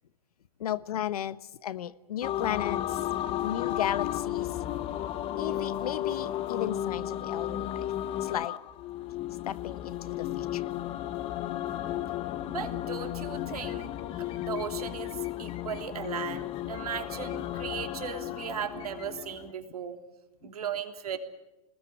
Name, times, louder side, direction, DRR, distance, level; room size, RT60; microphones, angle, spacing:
voice 1, 0.6-3.0 3.4-4.6 5.3-7.9 8.2-8.5 9.5-10.7, left 10 dB, 85° left, 16 dB, 1.1 m, -34 dB
sound 1, 2.2-19.5, left 12 dB, 30° left, 1.1 m, -34 dB
voice 2, 12.5-20.0 20.4-21.2, right 8 dB, 90° right, 6 dB, 3.0 m, -37 dB
25.0 x 20.0 x 9.3 m, 1.0 s
hypercardioid pair, 140°, 19 cm